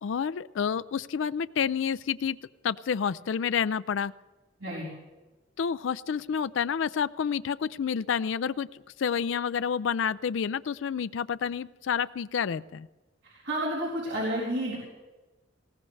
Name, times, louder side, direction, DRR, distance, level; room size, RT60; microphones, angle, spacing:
voice 1, 0.0-2.4 2.6-4.1 5.6-12.9, left 7 dB, 80° left, 15 dB, 0.4 m, -29 dB
voice 2, 13.2-14.8, right 1 dB, 70° right, -5 dB, 4.2 m, -31 dB
20.5 x 17.5 x 3.3 m, 1.2 s
head